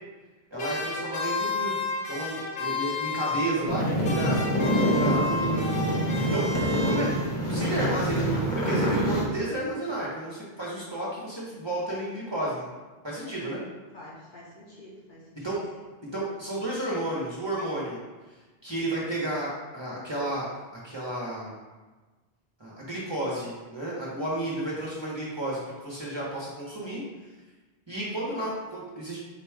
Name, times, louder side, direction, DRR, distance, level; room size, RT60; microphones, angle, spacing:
voice 1, 0.5-1.8 2.1-4.4 4.7-5.6 6.0-6.5 6.9-7.1 7.5-12.7 13.0-13.6 15.4-15.6 16.1-18.0 18.3-18.4 18.6-20.5 20.8-21.5 22.6-27.0 27.9-29.2, right 1 dB, 30° right, -7 dB, 0.8 m, -32 dB
sound 1, 0.6-3.8 4.0-7.4, left 4 dB, 75° left, 0.9 m, -32 dB
sound 2, 3.7-9.3, right 1 dB, 35° left, 0.7 m, -26 dB
voice 2, 6.6-7.1 13.2-13.6 13.9-15.8, left 1 dB, 50° left, -6 dB, 1.2 m, -47 dB
4.1 x 2.2 x 4.5 m, 1.3 s
omnidirectional pair, 1.0 m